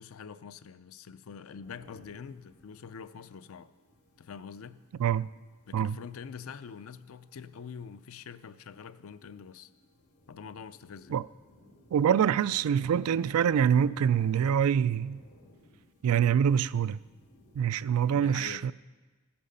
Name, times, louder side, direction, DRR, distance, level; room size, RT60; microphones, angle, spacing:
voice 1, 0.0-3.7 4.2-4.8 5.7-9.7 10.3-11.2 18.1-18.7, left 6 dB, 70° left, 0.5 m, -45 dB
sound 1, 1.6-18.0, left 1 dB, 90° left, 2.1 m, -59 dB
voice 2, 11.9-15.2 16.0-17.0 17.5-18.7, right 8 dB, 80° right, 0.3 m, -25 dB
13.5 x 8.7 x 5.4 m
head